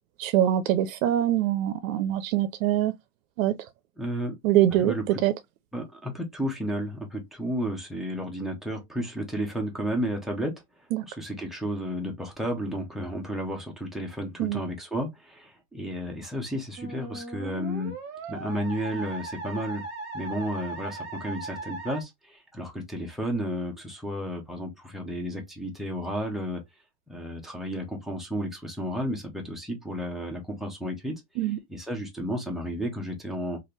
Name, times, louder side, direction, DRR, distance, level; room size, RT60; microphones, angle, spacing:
voice 1, 0.2-2.9 3.4-3.5 4.4-4.9 5.2-5.3 10.9-11.0 14.4-14.6 31.4-31.6, right 12 dB, 70° right, 0.5 m, -23 dB
voice 2, 4.0-4.4 4.7-5.2 5.7-10.5 11.0-17.9 18.3-19.8 20.1-26.6 27.1-31.2 31.4-33.6, equal, ahead, 0.3 m, -32 dB
Musical instrument, 16.8-22.0, right 3 dB, 25° right, 1.1 m, -38 dB
3.2 x 2.5 x 2.7 m
supercardioid pair, 145°, 42 cm